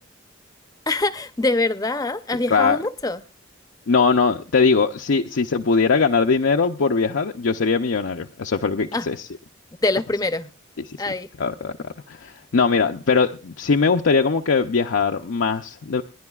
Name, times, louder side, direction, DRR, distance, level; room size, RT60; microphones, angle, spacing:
voice 1, 0.9-3.2 8.9-9.1 9.8-10.5 11.0-11.3, left 2 dB, 20° left, 0.6 m, -24 dB
voice 2, 3.9-9.2 10.9-11.0 11.4-16.0, left 4 dB, 75° left, 0.6 m, -21 dB
29.5 x 10.5 x 2.4 m
head